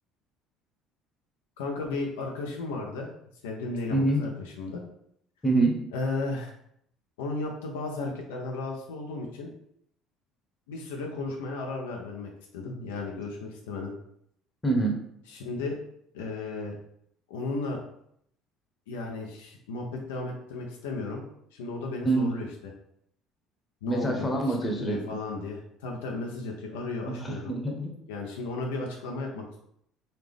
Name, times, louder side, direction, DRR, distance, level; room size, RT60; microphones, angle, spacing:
voice 1, 1.6-3.1 3.4-4.9 5.9-6.5 7.2-9.5 10.7-13.9 15.3-15.8 16.1-16.7 17.3-17.8 18.9-21.2 21.5-22.7 23.8-27.5 28.1-29.6, left 3 dB, 85° left, 1 dB, 0.7 m, -34 dB
voice 2, 3.9-4.2 5.4-5.8 14.6-14.9 22.0-22.3 23.9-25.0 27.1-27.9, right 2 dB, 25° left, 1 dB, 1.1 m, -25 dB
4.0 x 2.8 x 3.4 m, 0.72 s
hypercardioid pair, 70°, 0 cm